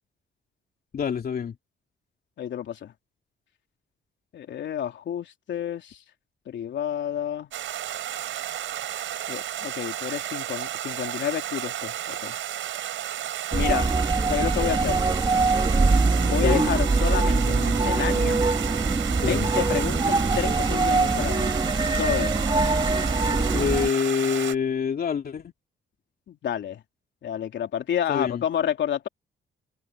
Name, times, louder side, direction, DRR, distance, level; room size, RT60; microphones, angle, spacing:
voice 1, 0.9-1.5 16.3-16.6 19.1-19.5 23.4-25.5 28.1-28.4, left 7 dB, 50° left, 3.0 m, -26 dB
voice 2, 2.4-2.9 4.3-6.0 6.5-7.5 9.3-12.3 13.5-13.9 14.3-15.0 16.2-18.4 19.1-21.5 21.9-22.5 26.3-26.8 27.2-29.1, left 9 dB, 65° left, 3.3 m, -30 dB
Stream, 7.5-24.5, right 12 dB, 75° right, 6.7 m, -33 dB
sound 1, 13.5-23.9, right 3 dB, 25° right, 3.3 m, -23 dB
cardioid pair, 90°, 20 cm